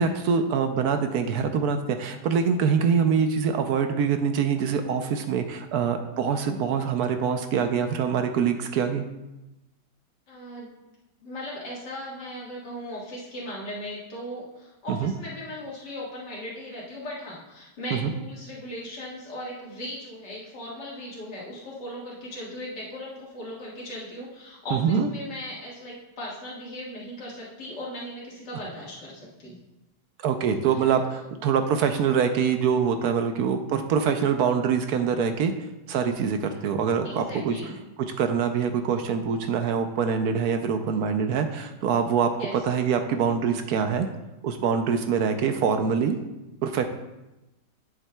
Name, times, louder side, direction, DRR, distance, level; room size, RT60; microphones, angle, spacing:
voice 1, 0.0-9.1 14.9-15.1 17.9-18.1 24.7-25.1 30.2-35.5 35.9-37.6 38.2-44.1 44.4-46.2 46.6-46.9, right 6 dB, 70° right, 7 dB, 1.1 m, -24 dB
voice 2, 10.3-10.7 11.2-29.6 30.7-30.9 37.0-37.8 42.3-42.5, left 1 dB, 80° left, -6 dB, 2.3 m, -38 dB
11.0 x 7.3 x 2.3 m, 0.99 s
omnidirectional pair, 1.8 m